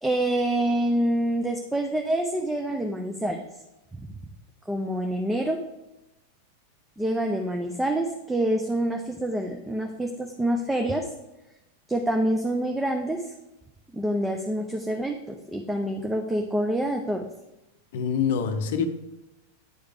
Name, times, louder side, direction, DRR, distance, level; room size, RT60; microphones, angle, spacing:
voice 1, 0.0-3.4 4.7-5.6 7.0-11.1 11.9-13.3 13.9-15.2 15.5-17.3, right 1 dB, 5° right, 0.5 m, -26 dB
voice 2, 17.9-18.9, left 7 dB, 55° left, 0.6 m, -25 dB
9.2 x 4.8 x 3.4 m
figure-of-eight pair, 90°, 0 cm